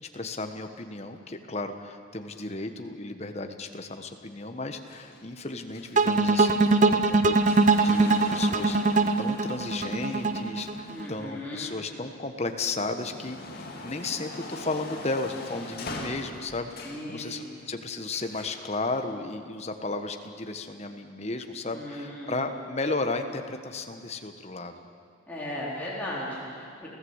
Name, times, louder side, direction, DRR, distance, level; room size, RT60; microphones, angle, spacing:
voice 1, 0.0-8.8 9.2-24.8, left 3 dB, 30° left, 6 dB, 1.3 m, -34 dB
sound 1, 4.9-12.1 12.6-17.1 18.1-18.7 19.5-19.6, left 2 dB, 45° left, 2.7 m, -42 dB
sound 2, 6.0-11.1, right 3 dB, 35° right, 0.9 m, -22 dB
voice 2, 10.9-11.7 16.8-17.6 21.7-22.4 25.3-26.9, left 1 dB, 10° left, -7 dB, 3.9 m, -37 dB
29.5 x 15.0 x 8.1 m, 2.3 s
head